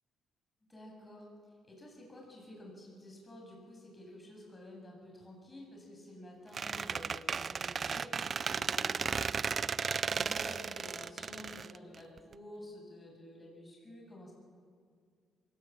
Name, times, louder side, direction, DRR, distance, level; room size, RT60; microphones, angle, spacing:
voice 1, 0.7-1.3 1.7-14.3, left 1 dB, 20° left, -1 dB, 8.0 m, -51 dB
Squeak, 6.5-12.3, right 6 dB, 45° right, 0.6 m, -35 dB
23.0 x 18.0 x 9.1 m, 2.1 s
cardioid pair, 90°, 0 cm